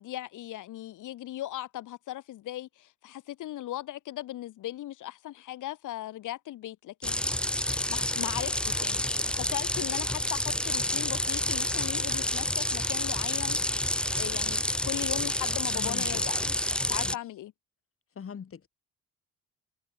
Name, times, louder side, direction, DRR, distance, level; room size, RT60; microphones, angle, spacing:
voice 1, 0.0-7.3 7.6-13.6 14.1-17.5, left 14 dB, 80° left, 4.0 m, -38 dB
sound 1, 7.0-17.2, left 1 dB, 5° left, 0.6 m, -29 dB
voice 2, 15.7-16.2 17.0-17.1 18.1-18.7, left 7 dB, 45° left, 5.0 m, -41 dB
cardioid pair, 90°, 30 cm